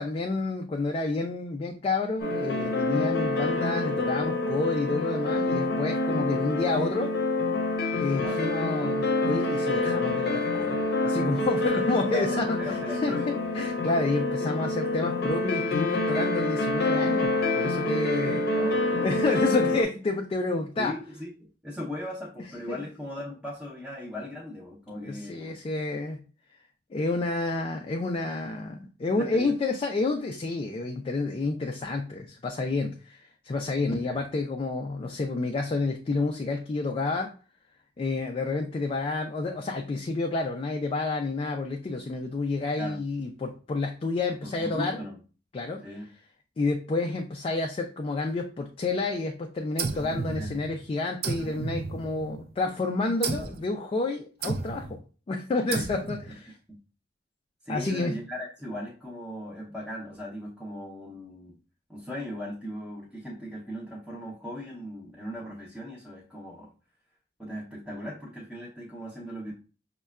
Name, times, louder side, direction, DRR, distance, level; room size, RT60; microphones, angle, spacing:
voice 1, 0.0-7.1 8.0-10.8 11.0-13.1 13.5-18.5 19.0-20.9 22.7-22.8 25.0-26.2 26.9-37.3 38.0-45.0 45.5-45.8 46.6-55.0 55.3-56.6 57.7-58.2, left 3 dB, 35° left, 2 dB, 0.3 m, -29 dB
sound 1, 2.2-19.8, left 2 dB, 65° left, 0.6 m, -27 dB
voice 2, 8.1-8.4 12.1-13.3 18.5-19.2 20.8-25.6 29.1-29.5 34.1-34.2 42.8-43.0 44.4-45.2 45.8-46.1 50.4-50.5 55.7-55.8 56.7-56.8 57.6-61.6 61.9-66.7 67.4-69.5, left 1 dB, 5° right, -6 dB, 0.6 m, -38 dB
sound 2, 49.8-50.8 51.2-52.5 53.2-53.7 54.4-55.0 55.7-56.3, right 4 dB, 60° right, 0.4 m, -33 dB
5.3 x 2.2 x 2.3 m, 0.37 s
head